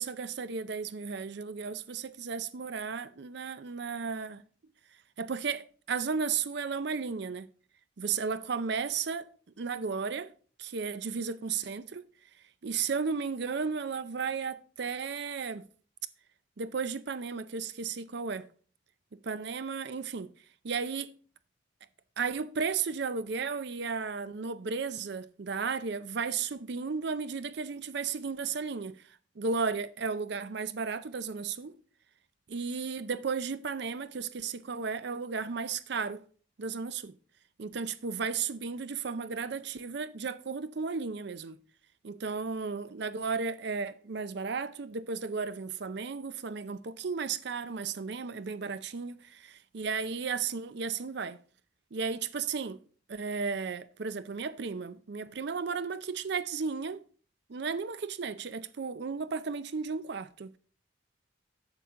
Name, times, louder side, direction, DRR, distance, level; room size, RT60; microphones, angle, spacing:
voice 1, 0.0-4.4 5.2-7.5 8.0-9.3 9.6-10.3 10.6-12.1 12.6-15.7 16.6-18.5 19.2-20.3 20.6-21.1 22.2-29.0 29.4-31.7 32.5-36.2 36.6-37.1 37.6-41.6 42.0-51.4 51.9-52.8 53.1-57.0 57.5-60.5, right 5 dB, 55° right, 0.5 m, -34 dB
8.2 x 6.9 x 3.7 m
head